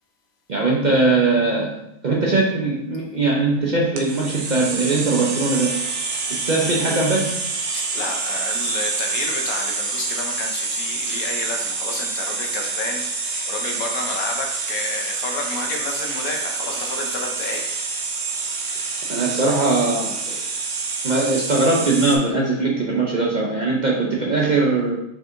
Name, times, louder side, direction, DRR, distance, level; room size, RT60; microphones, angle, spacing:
voice 1, 0.5-1.7 2.0-5.7 6.3-7.4 18.7-18.8 19.1-20.4 21.0-24.9, right 3 dB, 50° right, -3 dB, 0.5 m, -20 dB
sound 1, 4.0-22.2, right 4 dB, 85° right, 1.2 m, -27 dB
voice 2, 7.7-17.8, left 3 dB, 85° left, 2 dB, 1.3 m, -30 dB
4.7 x 4.4 x 2.6 m, 0.82 s
omnidirectional pair, 1.5 m